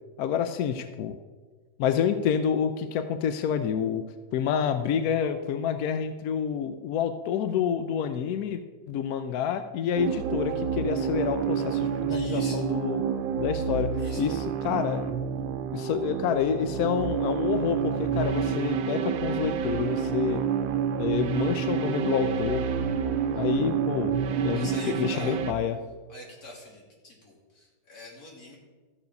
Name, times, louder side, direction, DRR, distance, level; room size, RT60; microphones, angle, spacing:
voice 1, 0.2-1.2 1.8-4.0 4.3-8.6 8.9-13.0 13.4-15.0 15.7-20.4 21.0-22.7 23.3-25.8, left 8 dB, 70° left, 9 dB, 0.9 m, -28 dB
sound 1, 10.0-25.5, right 7 dB, 80° right, 1.3 m, -28 dB
voice 2, 12.1-12.7 14.0-14.2 24.5-25.4 26.1-28.6, left 2 dB, 55° left, -2 dB, 2.9 m, -44 dB
13.5 x 7.0 x 5.3 m, 1.4 s
omnidirectional pair, 2.0 m